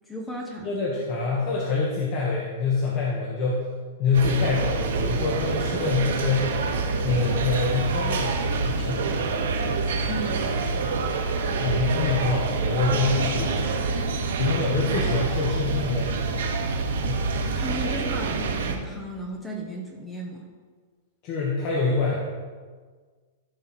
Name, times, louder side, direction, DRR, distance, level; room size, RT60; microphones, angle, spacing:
voice 1, 0.1-0.7 10.1-10.5 17.4-20.5, right 1 dB, 5° left, 0 dB, 1.1 m, -34 dB
voice 2, 0.6-3.6 4.0-6.5 7.0-9.1 11.6-13.8 14.4-16.6 17.1-17.3 21.2-22.2, left 4 dB, 35° left, -4 dB, 1.8 m, -26 dB
sound 1, 4.1-18.8, right 4 dB, 80° right, 1.7 m, -26 dB
15.0 x 6.3 x 4.4 m, 1.5 s
supercardioid pair, 165°, 0 cm